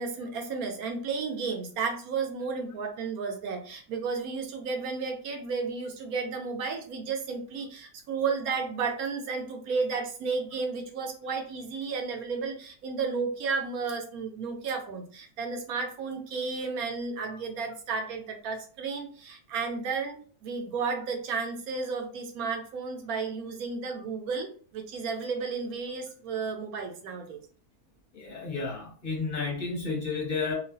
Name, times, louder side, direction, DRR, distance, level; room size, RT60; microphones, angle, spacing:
voice 1, 0.0-27.4, right 5 dB, 70° right, 4 dB, 1.0 m, -33 dB
voice 2, 28.1-30.5, left 4 dB, 35° left, -2 dB, 1.0 m, -32 dB
3.0 x 2.4 x 2.6 m, 0.43 s
omnidirectional pair, 1.7 m